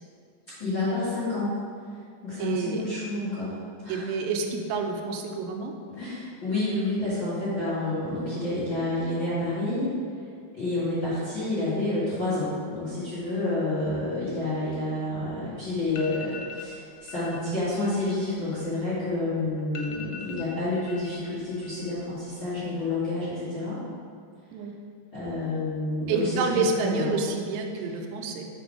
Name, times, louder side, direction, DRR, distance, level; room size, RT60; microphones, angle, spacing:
voice 1, 0.6-1.5 2.2-3.6 3.8-4.0 5.9-9.9 10.5-23.8 25.1-27.1, left 2 dB, 45° left, -12 dB, 1.5 m, -29 dB
voice 2, 2.4-2.8 3.9-5.7 24.5-24.7 26.1-28.5, right 4 dB, 85° right, 3 dB, 2.8 m, -28 dB
sound 1, 15.5-15.6 15.9-16.7 17.1-17.4 17.7-19.2 19.4-19.5 19.8-21.2 21.5-22.1 22.4-22.9, left 6 dB, 85° left, 3.0 m, -43 dB
6.2 x 5.1 x 5.0 m, 2.2 s
omnidirectional pair, 4.9 m